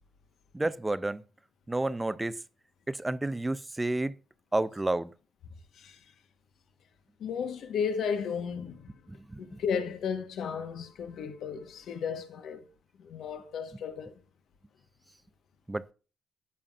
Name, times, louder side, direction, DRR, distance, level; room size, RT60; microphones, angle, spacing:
voice 1, 0.5-1.2 1.7-2.4 2.9-4.1 4.5-5.1 9.1-9.6 15.7-15.9, right 2 dB, 15° right, 0.4 m, -30 dB
voice 2, 5.7-6.1 7.2-9.0 9.4-12.6 13.0-14.1, left 6 dB, 70° left, 1.2 m, -34 dB
14.0 x 5.7 x 2.5 m
cardioid pair, 90°, 0 cm